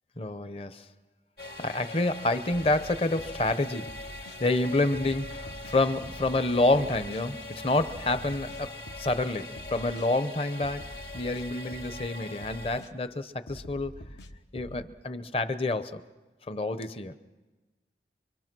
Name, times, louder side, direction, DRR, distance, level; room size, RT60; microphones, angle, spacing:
voice 1, 0.2-0.8 1.6-4.0 4.4-10.8 11.1-13.9 14.5-16.0 16.5-17.2, left 2 dB, 35° left, 11 dB, 0.8 m, -28 dB
sound 1, 1.4-12.8, left 2 dB, 60° left, 1.9 m, -42 dB
sound 2, 2.5-3.5 3.9-4.4 4.9-6.4 6.7-7.2 7.8-9.2 9.6-10.1 10.6-12.1 12.4-12.9 13.5-14.8, equal, 85° left, 1.3 m, -45 dB
25.5 x 25.0 x 6.1 m, 1.2 s
head